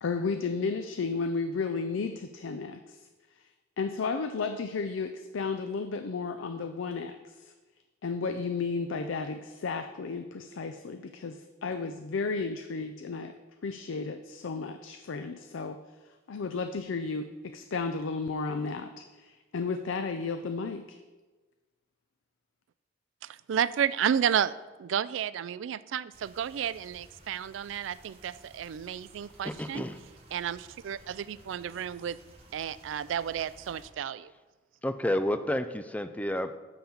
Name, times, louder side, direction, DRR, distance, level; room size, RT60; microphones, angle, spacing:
voice 1, 0.0-3.0 3.8-7.5 8.0-13.3 13.6-15.8 16.3-21.0, left 4 dB, 90° left, 8 dB, 0.5 m, -33 dB
voice 2, 23.2-29.9 30.3-32.2 32.5-34.3, right 9 dB, 80° right, 17 dB, 0.3 m, -32 dB
sound 1, 26.1-33.9, right 1 dB, 30° right, 1.5 m, -56 dB
voice 3, 29.4-30.0 34.8-36.6, left 1 dB, 10° left, 10 dB, 0.4 m, -30 dB
10.0 x 3.9 x 7.1 m, 1.2 s
head